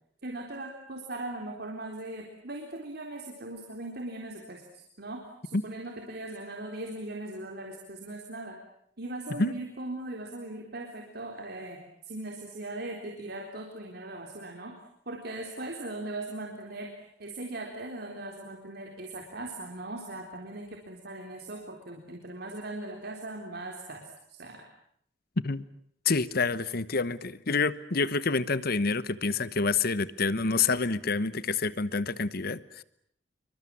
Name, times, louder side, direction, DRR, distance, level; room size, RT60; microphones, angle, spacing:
voice 1, 0.2-8.6 9.0-11.8 12.0-14.7 15.1-24.6, right 2 dB, 60° right, 2 dB, 3.9 m, -39 dB
voice 2, 26.0-32.8, left 4 dB, 55° left, 16 dB, 1.1 m, -28 dB
28.0 x 24.0 x 8.6 m, 0.69 s
head